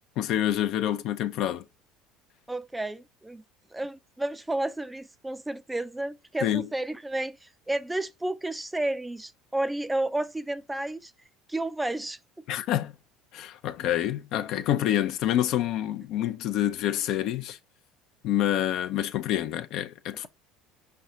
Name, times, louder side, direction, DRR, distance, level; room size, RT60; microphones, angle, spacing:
voice 1, 0.2-1.6 6.4-6.7 12.5-12.9 13.3-17.6 18.2-20.3, left 12 dB, 60° left, 0.5 m, -27 dB
voice 2, 2.5-3.4 3.7-11.1 11.5-12.2, right 1 dB, 10° right, 0.4 m, -31 dB
4.8 x 3.4 x 2.6 m
supercardioid pair, 90°, 0 cm